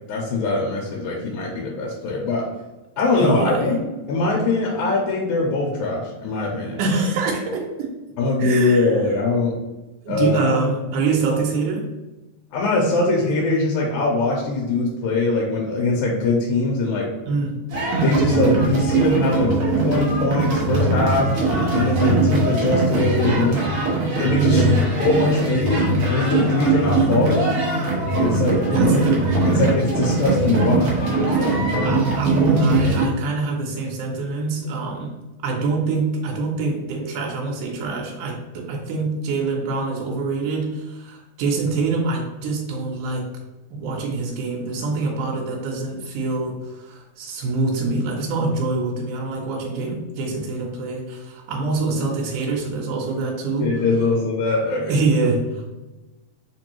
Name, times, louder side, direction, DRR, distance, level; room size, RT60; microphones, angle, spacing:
voice 1, 0.1-2.5 3.0-3.8 4.1-7.0 8.2-9.6 10.1-10.6 12.5-17.1 18.0-19.5 19.8-21.3 21.7-23.7 24.2-24.6 25.0-27.5 28.2-29.0 29.5-32.0 53.6-55.0, left 3 dB, 85° left, -2 dB, 2.0 m, -22 dB
voice 2, 3.1-3.8 6.8-7.9 8.4-9.0 10.1-11.9 17.3-17.7 24.4-24.9 28.6-29.2 31.8-35.2 35.4-43.3 43.7-53.8 54.9-55.8, right 3 dB, 90° right, 0 dB, 2.1 m, -25 dB
sound 1, 17.7-33.0, right 2 dB, 65° right, 1.5 m, -20 dB
4.7 x 2.6 x 2.9 m, 1.1 s
omnidirectional pair, 3.4 m